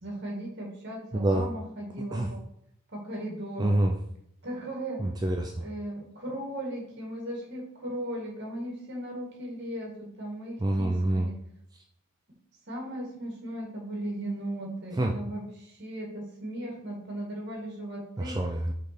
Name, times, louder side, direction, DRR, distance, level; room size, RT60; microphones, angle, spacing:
voice 1, 0.0-2.4 2.9-3.7 4.4-5.1 5.6-11.4 12.7-18.4, right 1 dB, 50° right, -2 dB, 2.0 m, -37 dB
voice 2, 1.1-1.5 2.1-2.3 3.6-4.0 5.0-5.6 10.6-11.3 15.0-15.1 18.2-18.7, right 1 dB, 20° right, 2 dB, 0.3 m, -26 dB
5.6 x 4.0 x 4.4 m, 0.71 s
head